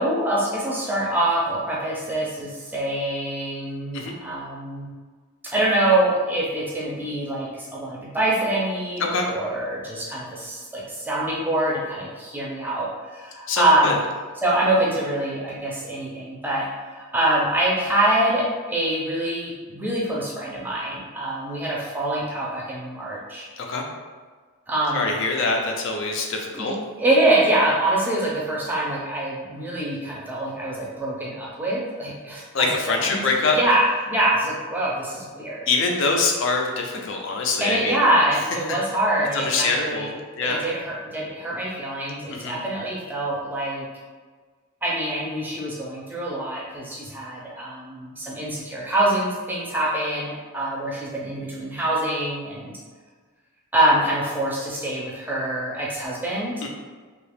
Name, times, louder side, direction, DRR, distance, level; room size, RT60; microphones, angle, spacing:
voice 1, 0.0-4.9 5.4-14.0 14.4-16.7 17.0-23.5 24.7-25.1 26.5-26.7 27.0-32.7 33.0-33.2 33.5-35.7 37.6-43.9 44.8-52.7 53.7-56.5, right 1 dB, 10° right, -4 dB, 0.5 m, -25 dB
voice 2, 13.5-14.0 23.6-23.8 24.9-26.7 32.5-33.6 35.7-38.0 39.3-40.6 42.3-42.6 56.6-56.7, left 3 dB, 60° left, 1 dB, 0.5 m, -24 dB
2.8 x 2.4 x 3.4 m, 1.5 s
head